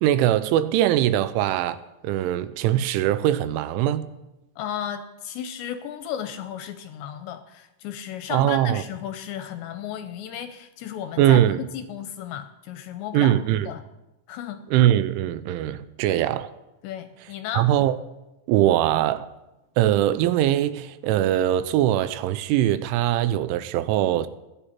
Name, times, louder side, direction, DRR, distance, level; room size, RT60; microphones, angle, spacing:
voice 1, 0.0-1.8 2.0-4.1 8.3-8.8 11.2-11.6 13.1-13.7 14.7-16.5 17.5-18.0 18.5-19.3 19.8-24.3, right 12 dB, 85° right, 3.1 m, -21 dB
voice 2, 4.6-13.4 13.7-13.8 14.3-14.6 16.8-17.7, left 9 dB, 80° left, 2.7 m, -34 dB
20.5 x 11.0 x 4.3 m
omnidirectional pair, 5.6 m